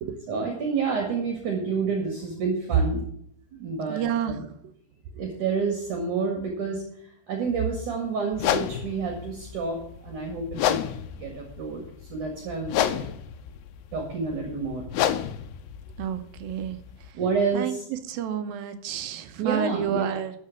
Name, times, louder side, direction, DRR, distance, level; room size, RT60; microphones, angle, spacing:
voice 1, 0.3-3.0 3.6-4.4 5.2-6.8 7.3-10.8 11.2-11.8 12.1-13.1 13.9-14.8 17.1-17.8 19.4-20.2, right 5 dB, 55° right, 2 dB, 3.1 m, -28 dB
voice 2, 3.9-4.4 16.0-16.8 17.5-17.8 18.1-20.3, right 8 dB, 75° right, 9 dB, 2.5 m, -29 dB
sound 1, 8.3-17.1, left 11 dB, 90° left, 2.8 m, -31 dB
12.5 x 6.7 x 7.2 m, 0.68 s
omnidirectional pair, 4.6 m